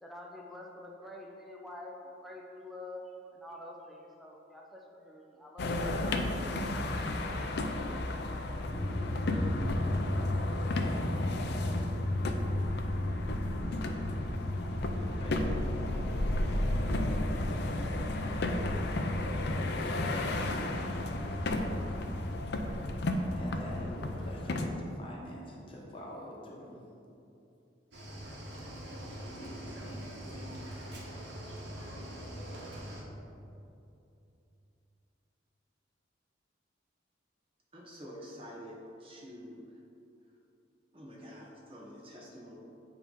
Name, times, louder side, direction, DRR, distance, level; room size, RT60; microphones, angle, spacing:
voice 1, 0.0-6.4, left 1 dB, ahead, -2 dB, 0.6 m, -47 dB
sound 1, 5.6-24.7, left 1 dB, 60° left, 0.5 m, -34 dB
sound 2, 8.7-24.6, left 1 dB, 85° left, 1.1 m, -36 dB
voice 2, 15.0-16.6 19.0-21.4 23.1-26.8 29.2-30.6, left 1 dB, 30° left, -4 dB, 1.0 m, -47 dB
Cricket / Waves surf, 27.9-33.0, right 1 dB, 65° right, 1.3 m, -43 dB
voice 3, 37.7-39.6 40.9-42.6, equal, 30° right, -3 dB, 0.9 m, -47 dB
8.4 x 2.9 x 5.3 m, 2.7 s
head